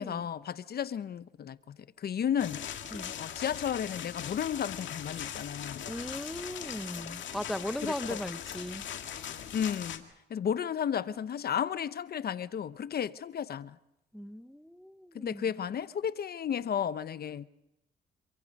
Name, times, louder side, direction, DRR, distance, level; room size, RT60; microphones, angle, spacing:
voice 1, 0.0-2.6 3.2-5.8 7.8-8.2 9.5-13.8 15.1-17.5, left 8 dB, 50° left, 0.8 m, -33 dB
sound 1, 2.4-10.0, left 9 dB, 70° left, 2.2 m, -40 dB
voice 2, 5.9-8.8 14.1-15.4, left 1 dB, ahead, 0.8 m, -38 dB
26.5 x 23.5 x 5.3 m
cardioid pair, 90°, 20 cm